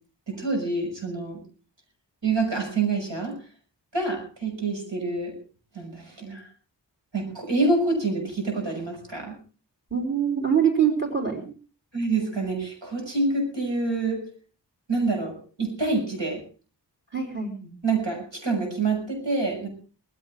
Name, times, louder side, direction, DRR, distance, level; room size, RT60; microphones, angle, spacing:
voice 1, 0.3-1.4 2.2-3.4 3.9-5.4 5.7-6.4 7.1-9.3 11.9-14.3 14.9-16.4 17.8-19.7, right 3 dB, 85° right, 2 dB, 6.4 m, -27 dB
voice 2, 9.9-11.4 17.1-17.7, right 7 dB, 25° right, 3 dB, 4.1 m, -24 dB
19.5 x 15.0 x 3.7 m, 0.36 s
wide cardioid pair, 70°, 43 cm